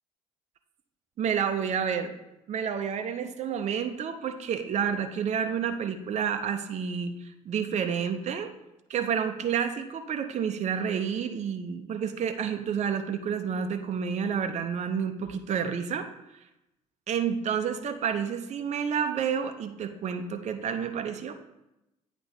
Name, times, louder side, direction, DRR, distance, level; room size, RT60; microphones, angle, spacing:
voice 1, 1.2-2.1 2.5-8.5 8.9-16.1 17.1-21.4, right 7 dB, 40° right, 7 dB, 0.6 m, -29 dB
8.8 x 3.0 x 5.1 m, 0.90 s
hypercardioid pair, 55°, 17 cm